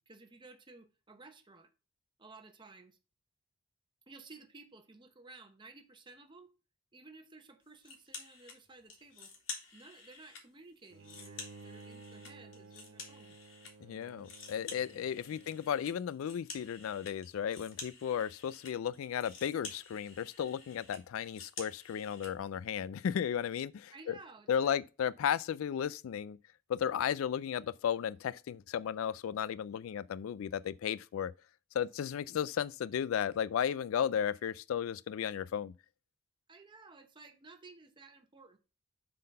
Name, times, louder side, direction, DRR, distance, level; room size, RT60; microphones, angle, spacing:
voice 1, 0.0-1.7 2.2-3.0 4.1-6.5 6.9-9.3 9.7-13.4 15.3-15.5 23.9-24.8 36.5-38.6, right 3 dB, 25° right, 0.8 m, -55 dB
sound 1, 7.8-8.6 8.9-10.4 10.8-13.7 14.0-22.3, left 4 dB, 70° left, 2.6 m, -49 dB
Bowed string instrument, 10.9-16.1, right 3 dB, 90° right, 0.7 m, -54 dB
voice 2, 13.8-24.1 24.5-26.4 26.7-31.3 31.7-35.7, left 8 dB, 85° left, 0.3 m, -34 dB
7.5 x 3.9 x 5.5 m
head